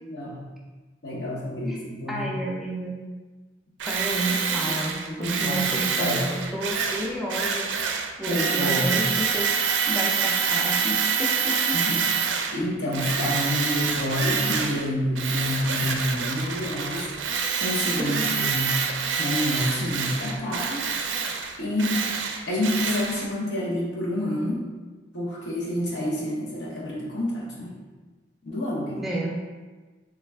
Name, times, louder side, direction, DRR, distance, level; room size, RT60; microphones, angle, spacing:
voice 1, 0.0-0.5 1.0-2.3 5.1-5.6 6.0-6.2 8.3-9.0 11.7-12.1 12.5-17.1 17.6-18.8 19.2-21.2 21.6-22.1 22.5-24.6 25.1-27.7 28.4-29.0, left 1 dB, 70° left, -5 dB, 0.9 m, -28 dB
voice 2, 2.1-2.9 3.9-7.7 8.2-9.5 9.9-11.8 18.0-18.3 29.0-29.3, right 1 dB, ahead, -5 dB, 0.4 m, -31 dB
Tools, 3.8-12.6 12.9-14.9 15.1-23.3, right 6 dB, 85° right, 0.4 m, -26 dB
3.2 x 2.4 x 3.2 m, 1.3 s
head